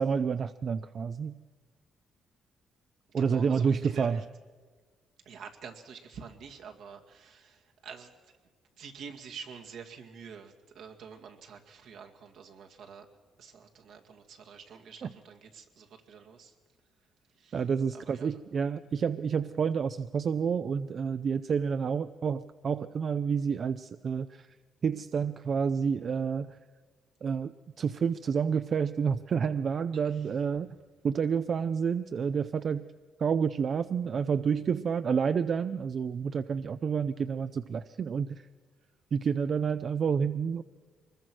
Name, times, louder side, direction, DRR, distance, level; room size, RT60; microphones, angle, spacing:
voice 1, 0.0-1.4 3.1-4.2 15.0-15.1 17.5-24.5 24.8-26.6 27.2-30.7 31.0-32.9 33.2-38.5 39.1-40.6, right 6 dB, 50° right, 11 dB, 0.5 m, -29 dB
voice 2, 3.2-4.3 5.2-8.3 8.8-13.1 13.4-16.6 17.3-17.6 17.9-18.3 29.9-30.4, right 6 dB, 80° right, 3 dB, 2.2 m, -47 dB
24.0 x 21.0 x 6.2 m, 1.4 s
cardioid pair, 90°, 0 cm